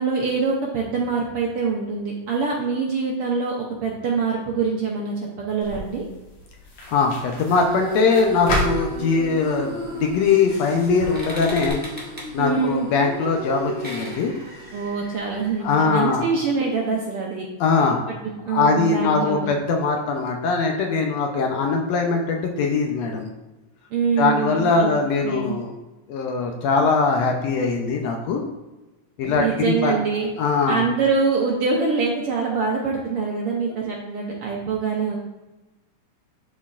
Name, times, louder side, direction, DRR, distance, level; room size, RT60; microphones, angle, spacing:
voice 1, 0.0-6.0 12.4-12.9 14.7-17.5 18.2-19.5 23.9-24.9 25.2-25.5 29.2-30.3 30.6-35.2, right 5 dB, 70° right, -2 dB, 1.4 m, -24 dB
sound 1, 5.6-11.7, left 1 dB, 60° left, 2.1 m, -33 dB
voice 2, 6.9-11.8 12.3-14.3 15.6-16.3 17.6-18.0 18.5-23.3 24.2-25.7 26.1-28.4 29.2-30.0 30.4-30.8, left 4 dB, 75° left, 2 dB, 1.7 m, -21 dB
sound 2, 7.5-15.7, right 2 dB, 55° right, 1.6 m, -34 dB
sound 3, 10.0-15.5, equal, 10° right, 0.5 m, -40 dB
11.5 x 4.2 x 2.4 m, 1.1 s
omnidirectional pair, 3.4 m